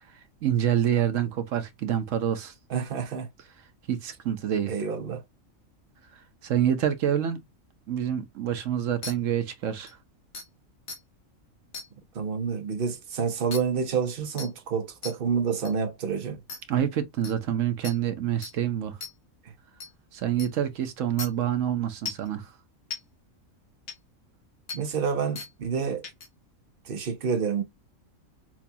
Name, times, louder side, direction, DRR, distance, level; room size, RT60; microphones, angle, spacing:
voice 1, 0.4-2.5 3.9-4.7 6.4-7.4 7.9-10.0 16.7-19.0 20.1-22.5, right 10 dB, 70° right, 1.1 m, -27 dB
voice 2, 2.7-3.3 4.7-5.2 12.1-16.4 19.4-19.5 24.7-26.0 26.8-27.6, right 6 dB, 50° right, 0.8 m, -28 dB
sound 1, 9.0-9.1 9.9-10.0 10.3-10.5 10.9-11.0 11.7-11.9 13.5-13.6 14.4-14.5 15.0-15.1 15.6-15.7 16.5-16.6 17.2-17.3 17.8-18.0 18.4-18.5 19.0-19.1 19.8-19.9 20.4-20.5 21.2-21.3 22.1-22.3 22.9-23.0 23.9-24.0 24.7-24.8 25.4-25.5 26.0-26.3, left 4 dB, 60° left, 1.1 m, -36 dB
5.9 x 2.3 x 2.7 m
omnidirectional pair, 1.4 m